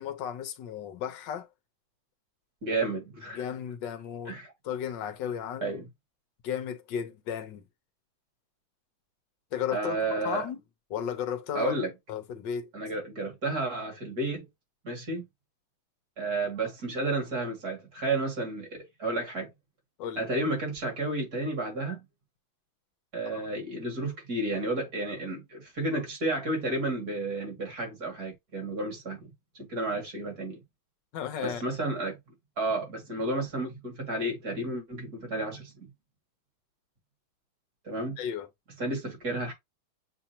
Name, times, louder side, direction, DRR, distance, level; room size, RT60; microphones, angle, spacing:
voice 1, 0.0-1.5 3.3-5.8 6.4-7.6 9.5-10.0 10.2-10.6 10.9-11.8 12.1-12.7 20.0-20.2 23.3-23.5 31.1-31.6 38.2-38.5, left 9 dB, 65° left, 1.4 m, -34 dB
voice 2, 2.6-3.4 4.3-4.5 5.6-5.9 9.7-10.5 11.5-11.9 12.7-14.5 14.8-15.2 16.2-18.7 19.0-19.5 20.2-22.0 23.1-29.3 29.5-30.6 31.4-32.2 32.6-35.9 37.8-38.1 38.8-39.5, right 2 dB, 45° right, 2.5 m, -31 dB
7.6 x 2.5 x 2.7 m
omnidirectional pair, 2.3 m